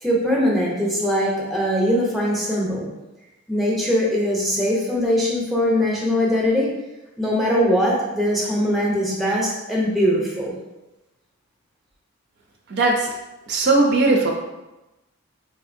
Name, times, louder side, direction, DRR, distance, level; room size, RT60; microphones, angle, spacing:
voice 1, 0.0-2.9 3.5-6.8 7.2-10.6, equal, ahead, -4 dB, 0.5 m, -21 dB
voice 2, 12.7-13.1 13.5-14.3, right 2 dB, 50° right, 1 dB, 0.4 m, -18 dB
3.9 x 2.6 x 2.5 m, 1.0 s
head